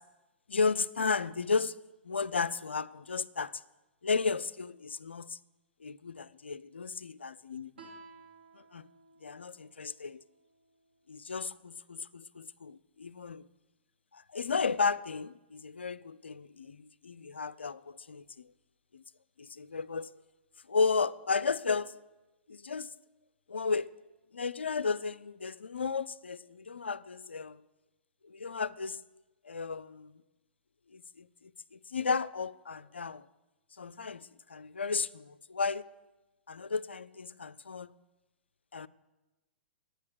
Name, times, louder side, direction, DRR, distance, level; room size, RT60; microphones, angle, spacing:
voice 1, 0.5-1.8 2.0-3.6 4.0-5.4 5.8-7.8 8.5-8.9 9.2-10.2 11.1-13.5 14.1-18.5 18.9-19.0 19.4-20.1 20.7-22.0 22.5-22.9 23.5-23.9 24.3-27.6 28.2-29.0 29.4-30.2 30.9-33.3 33.7-35.9 36.5-37.9 38.7-38.9, left 4 dB, 75° left, 0.4 m, -34 dB
Guitar, 7.7-11.0, right 3 dB, 65° right, 2.6 m, -56 dB
10.5 x 9.0 x 6.6 m
figure-of-eight pair, 110°, 6 cm